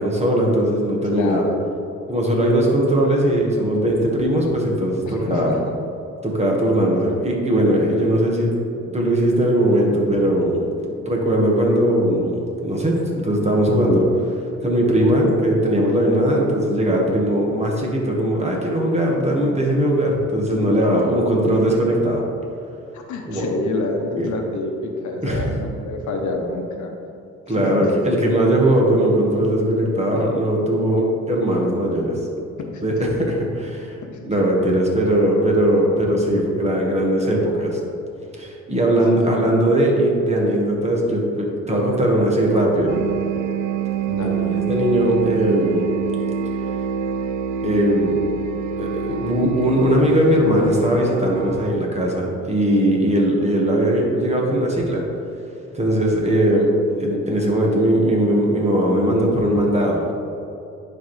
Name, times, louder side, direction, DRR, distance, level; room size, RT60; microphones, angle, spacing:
voice 1, 0.0-1.4 2.1-5.5 6.2-8.5 8.8-10.6 11.0-14.3 14.6-22.2 23.3-23.5 24.2-24.3 25.2-25.4 27.5-32.1 32.8-34.0 34.2-37.8 38.4-43.0 44.2-45.9 47.6-48.2 48.8-55.0 55.7-56.7 57.0-60.1, right 1 dB, 20° right, -1 dB, 1.5 m, -19 dB
voice 2, 1.1-1.6 5.1-5.7 20.7-20.8 22.9-26.9 27.5-27.9 30.1-30.2 32.6-32.9 34.0-34.3 39.2-39.6 44.1-44.5, left 3 dB, 75° left, 3 dB, 1.0 m, -28 dB
sound 1, 42.9-51.7, right 7 dB, 80° right, 0.5 m, -26 dB
10.5 x 4.6 x 3.2 m, 2.7 s
cardioid pair, 90°, 30 cm